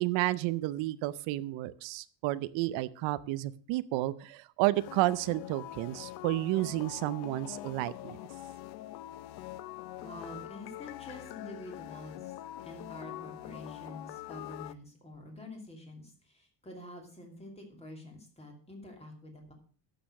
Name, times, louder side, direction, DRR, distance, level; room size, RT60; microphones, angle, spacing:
voice 1, 0.0-8.2, right 17 dB, 85° right, 15 dB, 0.7 m, -31 dB
sound 1, 4.7-14.7, left 15 dB, 60° left, 0.6 m, -44 dB
voice 2, 10.0-12.3 12.6-19.5, left 1 dB, 15° left, 2 dB, 2.7 m, -47 dB
11.5 x 6.9 x 6.3 m, 0.44 s
cardioid pair, 160°, 44 cm